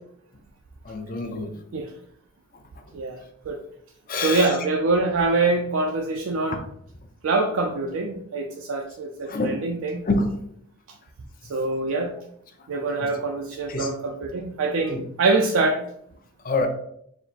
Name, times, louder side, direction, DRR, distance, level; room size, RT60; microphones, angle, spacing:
voice 1, 0.8-1.5 4.1-4.6 9.3-9.6 10.0-10.4 12.7-13.1 13.7-13.9 14.9-15.0 16.4-16.7, left 2 dB, 45° left, 5 dB, 0.6 m, -26 dB
voice 2, 4.2-6.6 7.2-10.0 11.5-12.1 12.7-15.8, right 3 dB, 80° right, 2 dB, 0.4 m, -24 dB
4.6 x 2.1 x 4.0 m, 0.71 s
head